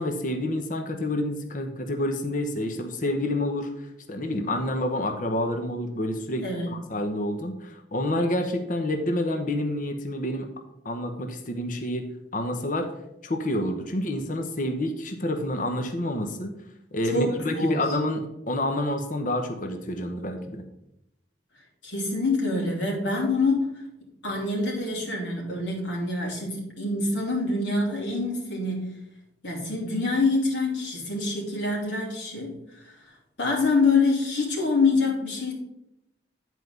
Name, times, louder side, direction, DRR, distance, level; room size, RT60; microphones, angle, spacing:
voice 1, 0.0-10.5 10.8-12.9 13.2-16.5 16.9-20.6, left 1 dB, 50° left, 5 dB, 1.0 m, -28 dB
voice 2, 17.0-18.0 21.8-23.8 24.2-29.0 29.4-33.0 33.4-35.5, left 3 dB, 80° left, -3 dB, 3.1 m, -26 dB
10.0 x 4.7 x 5.3 m, 0.83 s
head